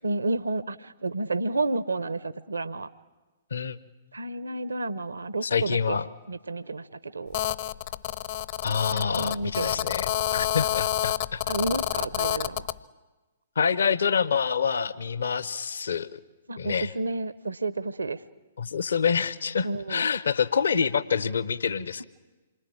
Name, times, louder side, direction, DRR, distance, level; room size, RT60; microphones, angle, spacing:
voice 1, 0.0-2.9 4.1-6.0 6.3-7.4 8.9-10.5 11.5-12.7 16.5-18.2 19.6-20.1, right 2 dB, 75° right, 15 dB, 0.9 m, -31 dB
voice 2, 5.4-6.1 8.6-11.4 13.6-16.1 16.6-16.9 18.6-22.0, left 6 dB, 65° left, 16 dB, 1.0 m, -27 dB
Telephone, 7.3-12.8, left 12 dB, 40° left, 0.8 m, -28 dB
27.5 x 24.0 x 8.8 m, 1.2 s
figure-of-eight pair, 115°, 0 cm